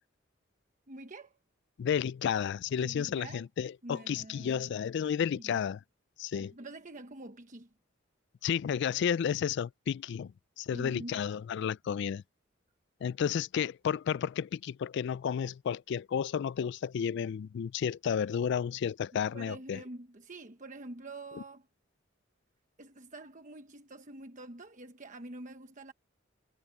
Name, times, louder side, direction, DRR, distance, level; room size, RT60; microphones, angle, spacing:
voice 1, 0.9-1.4 2.8-3.4 3.8-4.7 5.4-5.6 6.5-7.7 10.7-11.3 19.3-21.7 22.8-25.9, right 2 dB, 40° right, 1.1 m, -46 dB
voice 2, 1.8-5.8 6.2-6.5 8.4-12.2 13.0-19.8, left 8 dB, 60° left, 0.3 m, -32 dB
head